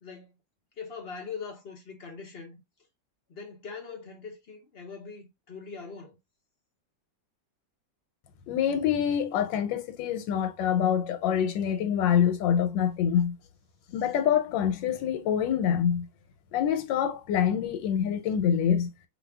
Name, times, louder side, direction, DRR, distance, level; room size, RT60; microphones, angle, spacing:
voice 1, 0.0-0.4 0.8-2.6 3.3-6.2, left 5 dB, 55° left, 0.7 m, -42 dB
voice 2, 8.5-13.4 13.9-16.1 16.5-18.9, left 8 dB, 90° left, 1.4 m, -26 dB
2.6 x 2.6 x 3.3 m
omnidirectional pair, 1.9 m